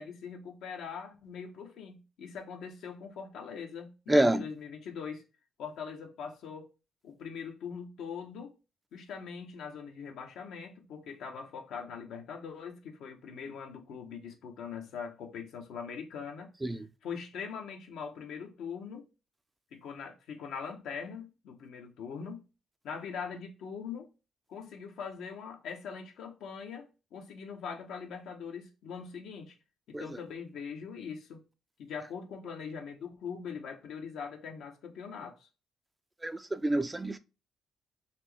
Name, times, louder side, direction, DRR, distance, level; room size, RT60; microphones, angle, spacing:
voice 1, 0.0-5.2 5.6-6.7 7.0-8.5 8.9-19.1 19.7-22.4 22.8-24.1 24.5-29.6 29.9-31.4 31.8-35.5, left 6 dB, 80° left, 1.0 m, -42 dB
voice 2, 4.1-4.4 16.6-16.8 29.9-30.1 36.2-37.2, right 1 dB, 15° right, 0.4 m, -27 dB
4.3 x 3.0 x 3.4 m
cardioid pair, 90°, 0 cm